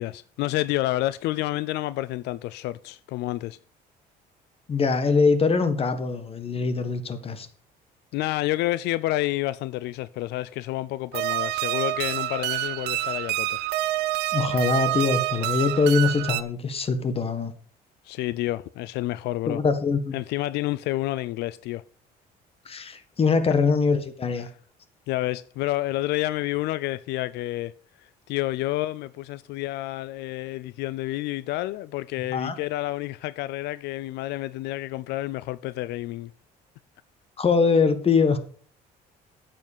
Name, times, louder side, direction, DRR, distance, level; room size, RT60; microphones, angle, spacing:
voice 1, 0.0-3.6 8.1-13.6 18.0-19.6 20.1-21.8 25.1-27.7 28.0-36.3, left 17 dB, 85° left, 0.4 m, -29 dB
voice 2, 4.7-7.5 14.3-17.5 19.5-20.2 22.6-24.5 32.3-32.5 37.4-38.4, left 4 dB, 35° left, 1.6 m, -23 dB
sound 1, 11.1-16.4, right 15 dB, 80° right, 0.7 m, -27 dB
9.2 x 7.7 x 5.5 m
cardioid pair, 110°, 17 cm